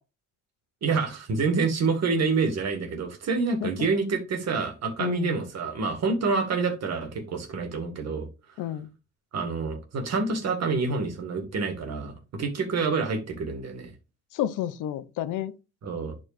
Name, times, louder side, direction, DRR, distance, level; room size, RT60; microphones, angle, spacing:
voice 1, 0.8-8.3 9.3-13.9 15.8-16.1, right 4 dB, 60° right, 2.0 m, -27 dB
voice 2, 5.0-5.4 8.6-8.9 14.3-15.5, left 12 dB, 90° left, 0.6 m, -30 dB
10.5 x 4.6 x 2.6 m
cardioid pair, 90°, 30 cm